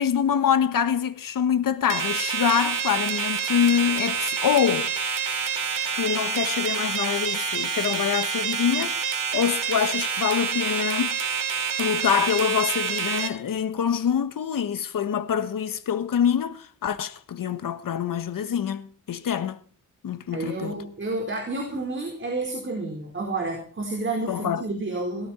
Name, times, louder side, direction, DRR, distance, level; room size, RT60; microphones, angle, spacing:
voice 1, 0.0-4.9 5.9-11.2 11.8-19.6 20.0-20.8 24.3-24.6, left 8 dB, 85° left, 1.4 m, -25 dB
sound 1, 1.9-13.3, right 6 dB, 80° right, 2.9 m, -27 dB
voice 2, 20.3-25.3, right 2 dB, 35° right, 4.4 m, -30 dB
17.5 x 15.5 x 4.4 m
wide cardioid pair, 110°, 32 cm